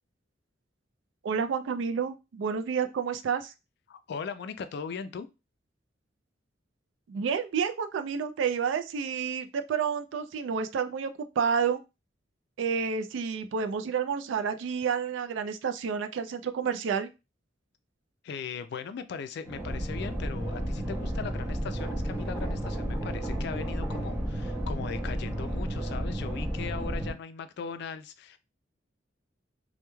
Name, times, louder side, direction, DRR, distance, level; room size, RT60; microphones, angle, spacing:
voice 1, 1.2-3.5 7.1-11.1 11.4-11.8 12.6-17.1, right 6 dB, 80° right, 0.3 m, -29 dB
voice 2, 3.9-5.3 18.2-28.4, left 6 dB, 60° left, 0.3 m, -39 dB
sound 1, 19.5-27.1, right 1 dB, 15° right, 0.5 m, -32 dB
2.2 x 2.1 x 3.0 m
head